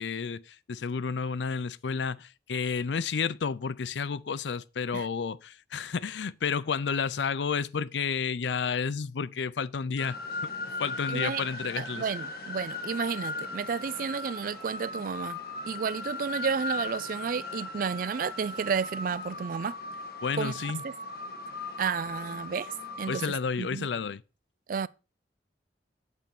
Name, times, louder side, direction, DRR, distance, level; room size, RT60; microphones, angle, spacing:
voice 1, 0.0-10.2 10.8-12.0 20.2-20.8 23.1-24.2, left 5 dB, 90° left, 0.5 m, -31 dB
sound 1, 10.0-23.3, left 2 dB, 60° left, 1.4 m, -38 dB
voice 2, 11.1-11.4 11.8-15.4 15.7-19.8 20.4-20.5 20.8-20.9 21.8-23.9 24.7-24.9, right 6 dB, 50° right, 0.4 m, -32 dB
8.2 x 4.4 x 7.0 m
head